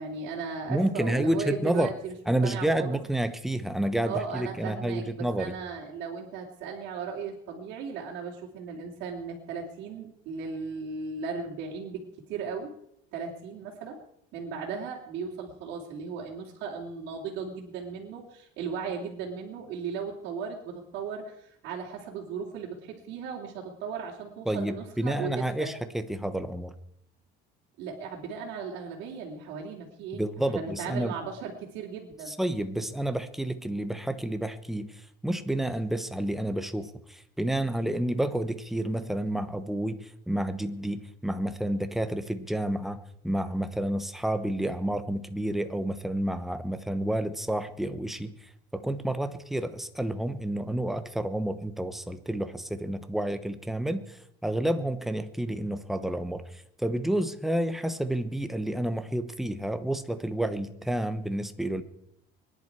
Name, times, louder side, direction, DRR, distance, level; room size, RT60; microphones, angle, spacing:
voice 1, 0.0-2.1 2.4-3.0 4.0-12.7 13.1-14.0 14.3-25.7 27.8-32.3, right 5 dB, 65° right, -3 dB, 3.0 m, -36 dB
voice 2, 0.7-1.9 2.3-5.5 24.5-26.7 30.1-31.1 32.3-43.0 43.2-48.3 48.7-61.8, right 1 dB, ahead, 9 dB, 1.0 m, -30 dB
23.5 x 10.5 x 4.7 m, 0.74 s
cardioid pair, 140°, 19 cm